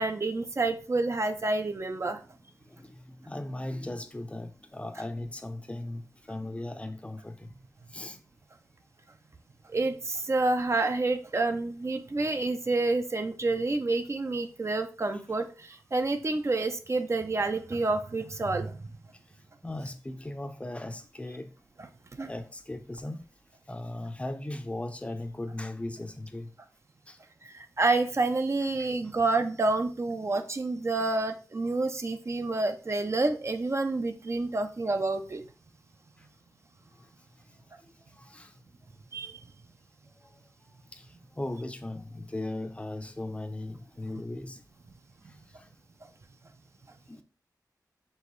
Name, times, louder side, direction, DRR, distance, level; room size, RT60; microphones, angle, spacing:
voice 1, 0.0-2.2 9.7-18.7 22.2-22.3 27.5-35.4 39.1-39.4, right 3 dB, 40° right, 0.5 m, -28 dB
voice 2, 2.7-7.5 7.9-8.2 19.6-21.5 22.3-23.3 23.7-26.5 27.1-27.2 30.3-30.4 38.2-38.5 40.9-44.6 45.6-45.7 47.1-47.2, left 1 dB, 15° left, 0.5 m, -38 dB
4.6 x 3.1 x 3.0 m
wide cardioid pair, 85°, 7 cm